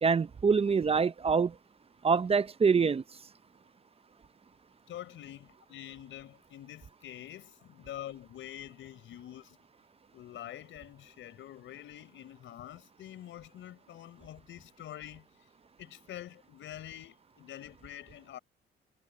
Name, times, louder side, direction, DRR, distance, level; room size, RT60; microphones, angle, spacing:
voice 1, 0.0-1.6 2.0-3.0, right 5 dB, 30° right, 0.6 m, -25 dB
voice 2, 4.9-9.6 10.1-15.3 15.8-18.4, left 12 dB, 75° left, 5.0 m, -46 dB
cardioid pair, 90°, 20 cm